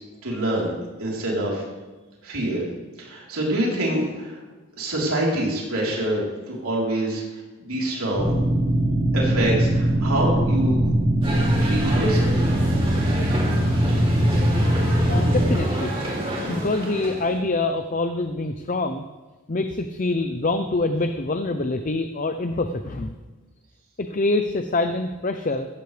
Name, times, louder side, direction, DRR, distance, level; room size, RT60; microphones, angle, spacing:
voice 1, 0.2-0.7 1.0-1.6 2.2-2.6 3.0-4.4 4.8-7.2 7.6-8.3 9.1-10.9 11.6-12.6, right 1 dB, 80° right, -4 dB, 3.8 m, -25 dB
sound 1, 8.1-15.6, right 1 dB, 5° left, 4.5 m, -21 dB
sound 2, 11.2-17.4, right 1 dB, 25° right, 2.8 m, -30 dB
voice 2, 15.1-19.0 19.5-23.1 24.0-25.7, left 2 dB, 35° left, 7 dB, 0.6 m, -25 dB
16.0 x 13.5 x 3.3 m, 1.2 s
head